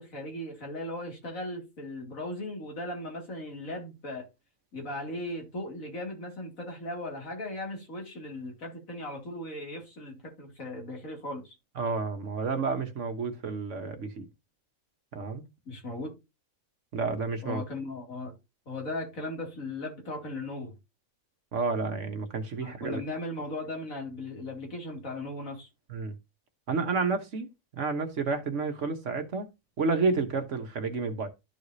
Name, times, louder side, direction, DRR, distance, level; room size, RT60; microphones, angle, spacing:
voice 1, 0.0-4.3 4.7-11.5 15.7-16.2 17.4-18.3 18.7-20.7 22.6-25.7, left 1 dB, 75° left, 3.0 m, -37 dB
voice 2, 11.8-14.3 15.1-15.4 16.9-17.6 21.5-23.0 25.9-26.1 26.7-29.5 29.8-31.3, right 4 dB, 60° right, 1.4 m, -30 dB
12.5 x 4.9 x 2.7 m
omnidirectional pair, 1.4 m